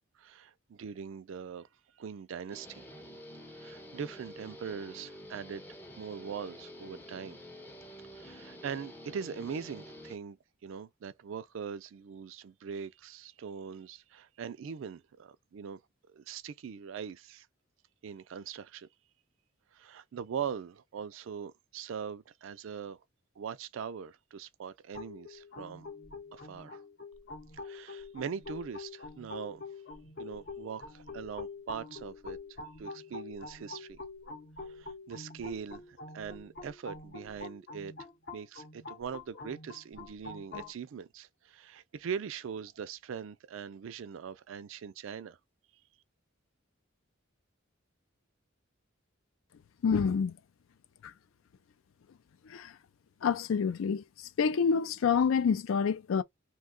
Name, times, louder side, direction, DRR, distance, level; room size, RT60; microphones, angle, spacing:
voice 1, 0.2-1.7 2.0-2.9 3.5-5.6 6.0-7.4 8.1-15.8 16.1-17.5 18.0-18.9 19.7-23.0 23.4-25.8 26.3-26.8 27.5-29.6 30.2-32.4 32.8-34.0 34.7-37.9 38.3-45.4, right 7 dB, 70° right, 0.4 m, -41 dB
Guitar, 2.5-10.2, equal, 10° left, 0.5 m, -49 dB
sound 1, 24.9-40.7, left 3 dB, 50° left, 0.7 m, -46 dB
voice 2, 49.8-50.4 51.0-51.1 52.5-52.7 53.2-54.0 54.4-56.2, left 6 dB, 75° left, 0.4 m, -27 dB
2.7 x 2.2 x 3.7 m
head